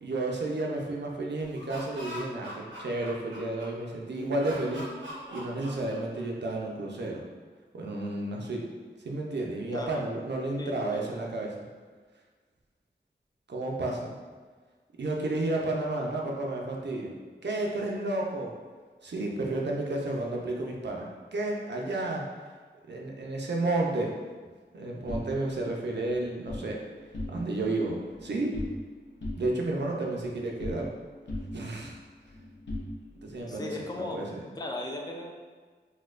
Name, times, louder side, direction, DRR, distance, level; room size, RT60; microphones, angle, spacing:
voice 1, 0.0-4.9 5.3-7.2 7.7-8.7 9.0-11.5 13.5-14.1 15.0-17.1 17.4-18.5 19.0-22.2 22.9-24.1 24.7-26.8 27.3-28.6 29.4-30.9 31.5-32.0 33.2-33.8 34.1-34.4, right 2 dB, 65° right, -1 dB, 0.5 m, -31 dB
Laughter, 1.4-3.9 4.4-6.4, equal, 85° right, 0.9 m, -42 dB
voice 2, 10.6-11.1 33.5-34.2 34.5-35.3, left 2 dB, 20° left, 0 dB, 0.4 m, -37 dB
sound 1, 25.1-26.7 27.0-27.7 28.0-28.9 29.2-31.0 31.3-33.4, left 1 dB, 75° left, 0.7 m, -39 dB
4.1 x 2.3 x 2.4 m, 1.5 s
wide cardioid pair, 85°, 19 cm